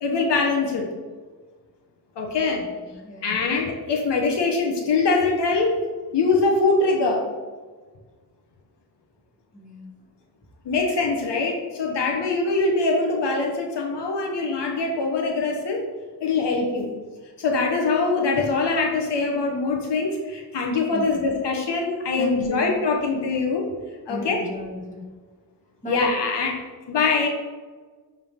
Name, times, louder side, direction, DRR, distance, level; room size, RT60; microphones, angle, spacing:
voice 1, 0.0-0.9 2.2-2.6 3.2-5.8 6.1-7.3 10.6-15.8 16.2-16.9 17.4-23.7 24.1-24.4 25.9-26.5 26.9-27.3, left 3 dB, 90° left, 1 dB, 1.0 m, -23 dB
voice 2, 2.8-3.4 9.5-9.9 20.9-21.2 22.2-22.8 24.1-25.1 25.8-26.1, right 1 dB, 20° left, -3 dB, 2.1 m, -34 dB
10.5 x 3.7 x 3.5 m, 1.4 s
cardioid pair, 80°, 41 cm